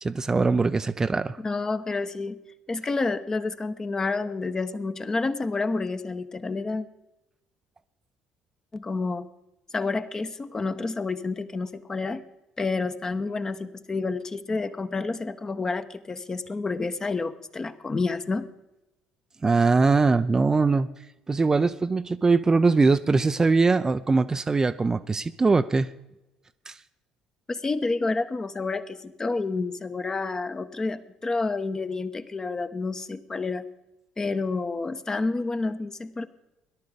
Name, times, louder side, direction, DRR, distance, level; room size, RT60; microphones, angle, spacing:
voice 1, 0.0-1.4 19.4-20.9 21.3-25.9 26.7-26.8, right 4 dB, 20° right, 11 dB, 0.5 m, -22 dB
voice 2, 1.4-2.4 2.7-6.9 8.7-9.3 9.7-12.2 12.6-18.5 27.5-33.6 34.2-36.3, left 3 dB, 25° left, 10 dB, 1.0 m, -29 dB
18.0 x 11.5 x 5.1 m, 0.95 s
figure-of-eight pair, 55°, 3 cm